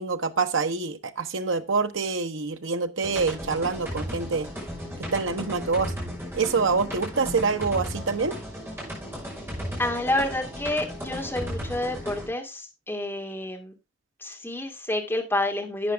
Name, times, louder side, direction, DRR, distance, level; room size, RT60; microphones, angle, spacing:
voice 1, 0.0-4.5 5.1-5.9 6.3-8.3, right 4 dB, 80° right, 1.0 m, -26 dB
sound 1, 3.0-12.3, equal, 10° right, 5.8 m, -35 dB
voice 2, 9.8-13.7 14.2-15.9, left 1 dB, 10° left, 2.3 m, -29 dB
12.0 x 8.7 x 3.4 m
head